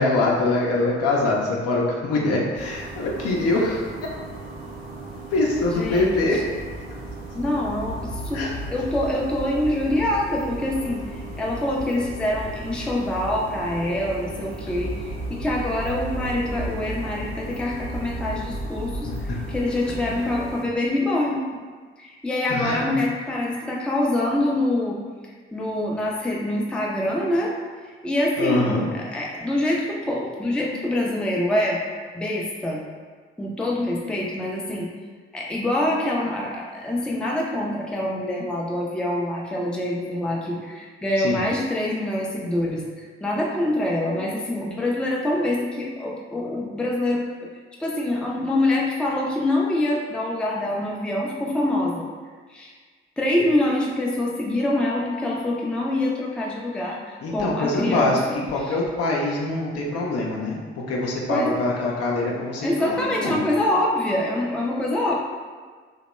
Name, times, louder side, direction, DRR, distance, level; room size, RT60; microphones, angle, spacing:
voice 1, 0.0-4.1 5.3-6.4 8.3-8.5 19.0-19.4 20.1-20.2 22.5-23.0 28.4-28.9 41.1-41.4 57.2-63.4, left 2 dB, 55° left, -2 dB, 0.6 m, -24 dB
sound 1, 2.5-20.6, right 2 dB, 90° right, 0.5 m, -39 dB
sound 2, 5.5-20.5, equal, 30° left, 1.0 m, -36 dB
voice 2, 5.7-6.2 7.3-21.4 22.0-25.0 25.5-27.5 27.8-28.8 29.0-31.8 32.1-32.8 33.4-34.9 35.3-47.5 47.8-52.1 52.5-52.7 53.2-58.4 61.3-61.6 62.6-65.1, left 1 dB, 5° left, -3 dB, 0.5 m, -25 dB
2.8 x 2.1 x 3.1 m, 1.5 s
figure-of-eight pair, 40°, 29 cm